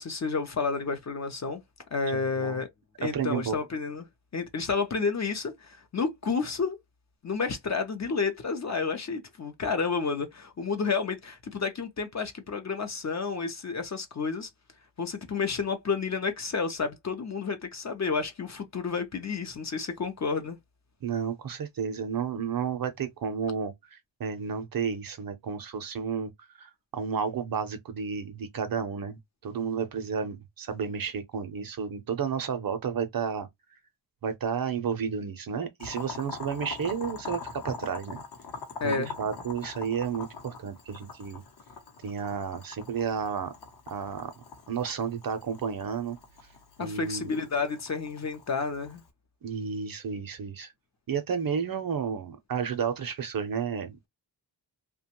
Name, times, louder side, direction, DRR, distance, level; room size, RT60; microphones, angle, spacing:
voice 1, 0.0-1.6 1.9-2.7 3.0-4.1 4.3-6.8 7.2-14.5 15.0-20.6 38.8-39.1 46.8-49.0, left 5 dB, 40° left, 0.5 m, -30 dB
voice 2, 2.1-2.6 3.0-3.6 21.0-26.3 26.6-33.5 34.2-38.2 38.8-41.4 42.0-43.5 43.9-44.3 44.7-46.2 46.8-47.3 49.4-50.7 51.1-54.1, right 6 dB, 50° right, 0.6 m, -32 dB
Boiling, 35.8-49.1, left 5 dB, 55° left, 0.8 m, -43 dB
2.8 x 2.2 x 2.9 m
wide cardioid pair, 180°, 45 cm